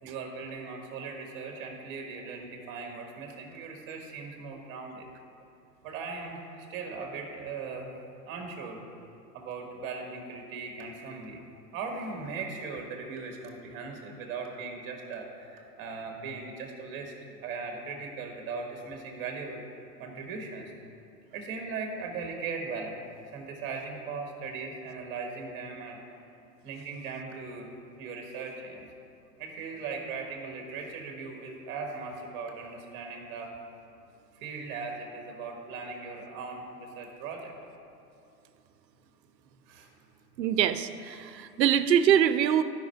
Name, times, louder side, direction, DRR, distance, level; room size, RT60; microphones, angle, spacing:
voice 1, 0.0-5.0 5.8-7.9 8.2-8.8 9.3-11.4 11.7-19.6 20.0-20.7 21.3-23.0 23.3-26.0 26.6-28.9 29.4-33.6 34.3-37.5 39.7-39.9, right 4 dB, 25° right, 3 dB, 1.2 m, -39 dB
voice 2, 40.4-42.6, right 9 dB, 85° right, 12 dB, 0.7 m, -24 dB
12.0 x 5.5 x 4.5 m, 2.6 s
hypercardioid pair, 140°, 49 cm